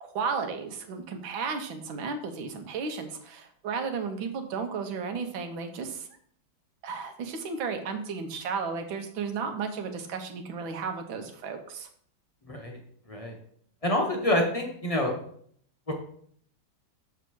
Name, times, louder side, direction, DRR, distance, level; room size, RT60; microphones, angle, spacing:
voice 1, 0.0-6.1 6.8-11.9, right 5 dB, 80° right, 6 dB, 1.7 m, -34 dB
voice 2, 12.5-12.8 13.1-13.3 13.8-15.1 15.9-16.0, left 1 dB, 35° left, 1 dB, 0.5 m, -27 dB
7.3 x 3.5 x 6.2 m, 0.63 s
omnidirectional pair, 2.1 m